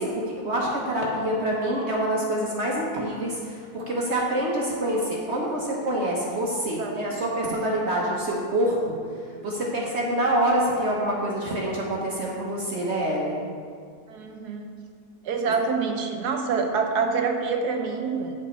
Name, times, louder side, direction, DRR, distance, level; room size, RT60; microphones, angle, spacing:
voice 1, 0.0-9.0 9.4-13.4, right 1 dB, 50° right, -3 dB, 1.1 m, -26 dB
voice 2, 14.1-14.8 15.2-18.3, right 5 dB, 80° right, 3 dB, 1.2 m, -26 dB
8.5 x 5.4 x 4.2 m, 2.2 s
omnidirectional pair, 1.7 m